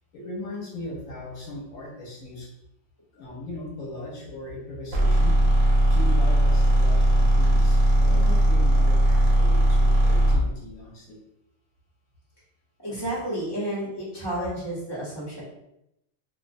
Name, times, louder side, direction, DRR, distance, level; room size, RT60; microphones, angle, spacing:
voice 1, 0.1-2.5 3.1-5.4 5.9-11.2, left 1 dB, 80° left, -2 dB, 1.0 m, -38 dB
sound 1, 4.9-10.5, equal, 65° right, 0.9 m, -19 dB
voice 2, 12.8-15.4, right 1 dB, 20° left, -8 dB, 0.8 m, -31 dB
2.4 x 2.1 x 2.5 m, 0.83 s
omnidirectional pair, 1.4 m